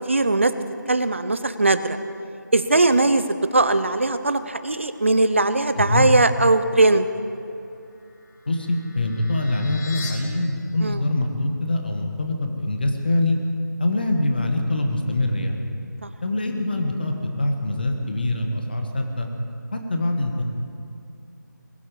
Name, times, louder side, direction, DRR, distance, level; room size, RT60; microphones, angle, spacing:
voice 1, 0.1-0.5 0.9-2.0 2.5-7.1 10.8-11.0, right 2 dB, 40° right, 12 dB, 0.7 m, -19 dB
voice 2, 5.8-6.1 8.5-13.4 13.8-15.6 16.2-19.3 19.7-20.4, left 2 dB, 30° left, 4 dB, 1.4 m, -24 dB
sound 1, 7.9-10.1, left 4 dB, 65° left, 3.7 m, -40 dB
20.5 x 8.5 x 8.3 m, 2.6 s
figure-of-eight pair, 175°, 11 cm